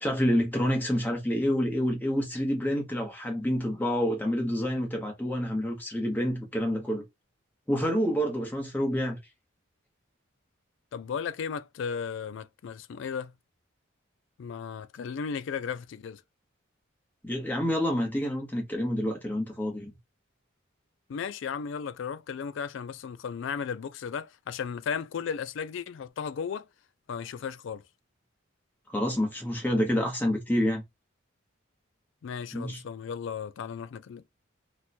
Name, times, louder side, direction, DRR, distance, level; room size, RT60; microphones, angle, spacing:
voice 1, 0.0-7.0 7.7-9.2 17.2-19.9 28.9-30.8 32.5-32.8, equal, 10° left, 0.9 m, -28 dB
voice 2, 10.9-13.3 14.4-16.2 21.1-26.7 27.1-27.8 32.2-34.2, left 6 dB, 65° left, 0.3 m, -35 dB
2.9 x 2.2 x 4.0 m
head